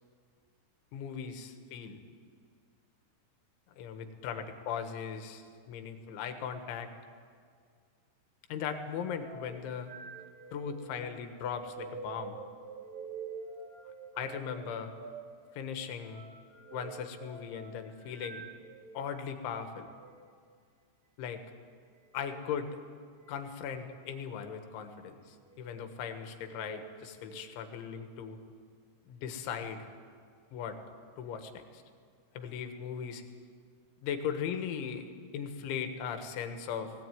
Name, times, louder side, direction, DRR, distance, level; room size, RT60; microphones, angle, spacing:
voice 1, 0.9-2.0 3.8-6.9 8.5-9.9 10.5-12.4 14.2-14.9 15.6-16.2 16.7-18.5 18.9-19.9 21.2-21.4 22.1-22.8 23.3-28.4 29.1-29.9 30.5-30.8 31.2-31.8 32.4-33.2 34.0-35.1 35.3-36.9, left 7 dB, 90° left, 7 dB, 3.8 m, -38 dB
sound 1, 9.2-19.1 19.9-20.1 22.1-22.5 23.3-23.8 24.3-24.6 25.4-25.9 26.4-27.4, right 5 dB, 55° right, 0.9 m, -47 dB
20.5 x 17.5 x 9.3 m, 2.1 s
omnidirectional pair, 5.3 m